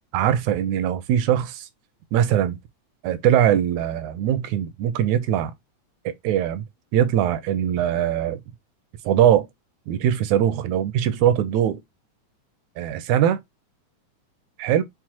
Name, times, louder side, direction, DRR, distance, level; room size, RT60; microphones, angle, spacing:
voice 1, 0.1-1.7 2.1-2.6 3.0-5.5 6.1-6.6 6.9-8.4 9.1-9.5 9.9-11.8 12.8-13.4 14.6-14.8, right 10 dB, 85° right, 2.0 m, -21 dB
6.1 x 2.1 x 2.8 m
omnidirectional pair, 3.3 m